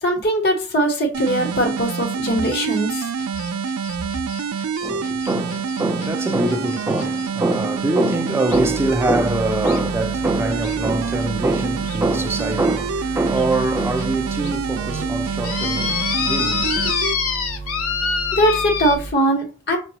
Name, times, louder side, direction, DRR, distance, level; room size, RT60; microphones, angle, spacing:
voice 1, 0.0-3.1 18.3-19.8, right 1 dB, 50° left, 1.0 m, -20 dB
sound 1, 1.1-17.1, right 5 dB, 80° right, 0.4 m, -27 dB
sound 2, 2.3-7.3 8.5-8.6 9.6-9.8 10.6-10.8 11.2-11.3 11.8-12.0 12.7-12.8 13.4-13.5 14.0-14.1 14.4-14.6 15.4-19.0, left 6 dB, 75° left, 0.6 m, -26 dB
voice 2, 4.8-16.9, right 2 dB, 10° right, 0.3 m, -23 dB
sound 3, 8.5-19.1, right 3 dB, 40° right, 0.7 m, -33 dB
5.4 x 2.3 x 2.8 m
head